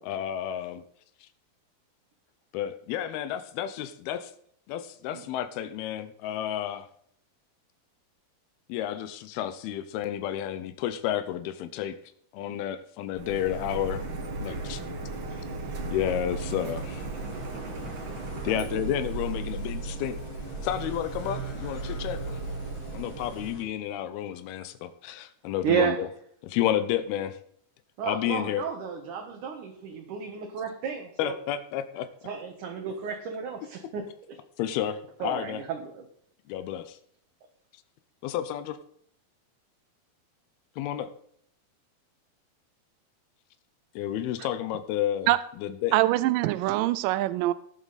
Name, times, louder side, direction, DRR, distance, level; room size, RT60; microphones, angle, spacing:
voice 1, 0.0-0.8 1.2-1.3 2.5-4.3 4.7-6.9 8.7-12.0 12.3-14.0 14.4-14.8 15.9-17.0 18.4-20.2 20.6-22.4 22.9-26.1 26.4-27.4 28.0-28.7 31.2-32.1 34.6-35.6 36.5-37.0 38.2-38.8 40.8-41.1 44.0-45.3 45.6-45.9, left 11 dB, 90° left, 11 dB, 2.7 m, -31 dB
Printer, 13.1-23.5, right 3 dB, 50° right, 1.6 m, -36 dB
sound 1, 16.0-23.6, right 3 dB, 55° left, 2.8 m, -44 dB
voice 2, 18.5-18.8 25.6-26.0 28.0-31.3 32.2-34.0 35.2-36.0, right 7 dB, 65° right, 2 dB, 2.5 m, -32 dB
voice 3, 45.9-47.5, right 16 dB, 80° right, 15 dB, 2.0 m, -23 dB
18.5 x 7.3 x 4.1 m, 0.64 s
omnidirectional pair, 4.3 m